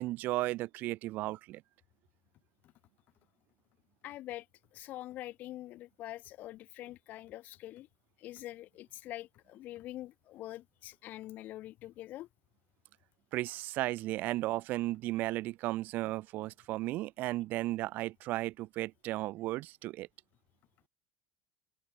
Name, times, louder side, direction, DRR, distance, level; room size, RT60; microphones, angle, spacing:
voice 1, 0.0-1.6 13.3-20.1, right 17 dB, 60° right, 1.4 m, -35 dB
voice 2, 4.0-4.5 4.7-7.9 8.2-12.3, left 15 dB, 55° left, 1.3 m, -45 dB
hypercardioid pair, 75°, 3 cm